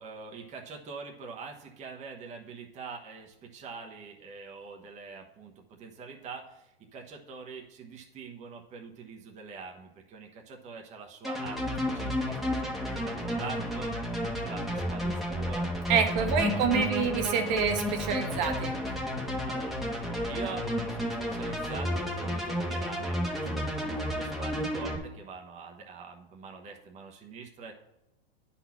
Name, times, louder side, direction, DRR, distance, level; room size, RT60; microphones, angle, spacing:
voice 1, 0.0-15.7 16.0-17.0 18.8-27.7, right 5 dB, 25° right, 1 dB, 1.1 m, -44 dB
sound 1, 11.2-25.0, left 1 dB, ahead, 1.1 m, -32 dB
voice 2, 15.9-18.8, right 6 dB, 45° right, 4 dB, 1.1 m, -27 dB
9.9 x 4.2 x 5.8 m, 0.90 s
hypercardioid pair, 125°, 31 cm